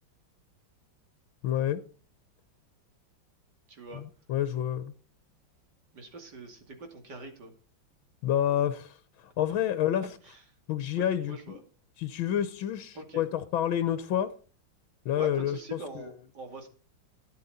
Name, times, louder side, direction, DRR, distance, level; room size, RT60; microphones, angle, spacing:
voice 1, 1.4-1.8 3.9-4.9 8.2-10.1 10.7-11.6 12.0-14.3 15.0-16.1, left 10 dB, 80° left, 1.7 m, -29 dB
voice 2, 3.7-4.0 5.9-7.5 10.2-10.4 10.9-11.6 12.9-13.2 15.2-16.7, right 2 dB, 55° right, 3.0 m, -43 dB
12.5 x 10.5 x 4.2 m
omnidirectional pair, 2.2 m